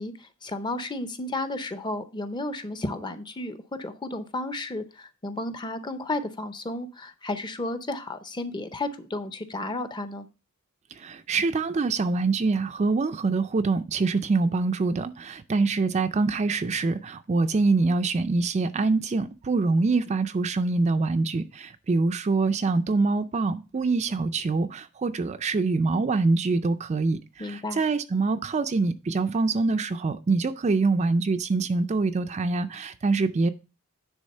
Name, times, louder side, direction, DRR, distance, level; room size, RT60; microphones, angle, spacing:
voice 1, 0.0-10.3 27.4-27.8, left 2 dB, 20° left, 0.6 m, -33 dB
voice 2, 10.9-33.5, right 3 dB, 30° right, 0.3 m, -25 dB
9.7 x 3.5 x 5.3 m
head